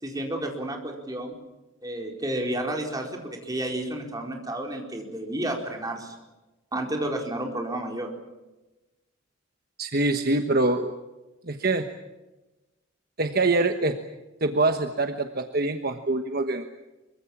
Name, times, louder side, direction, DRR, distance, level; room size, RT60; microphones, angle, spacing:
voice 1, 0.0-1.3 1.8-6.2 6.7-8.1, right 1 dB, 20° right, 1 dB, 4.5 m, -31 dB
voice 2, 9.8-10.9 11.5-11.9 13.2-13.9 14.4-16.8, right 2 dB, 50° right, 6 dB, 1.3 m, -24 dB
24.5 x 24.0 x 7.3 m, 1.1 s
head